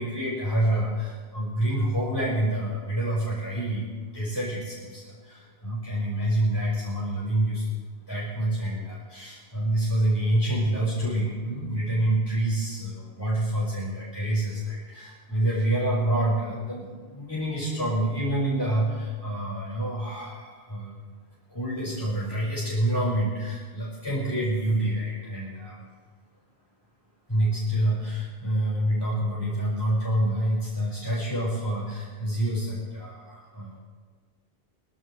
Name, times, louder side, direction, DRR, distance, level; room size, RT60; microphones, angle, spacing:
voice 1, 0.0-7.7 8.1-21.0 21.5-25.9 27.3-33.8, right 1 dB, 20° left, -8 dB, 5.5 m, -27 dB
24.0 x 15.0 x 3.3 m, 1.5 s
omnidirectional pair, 1.1 m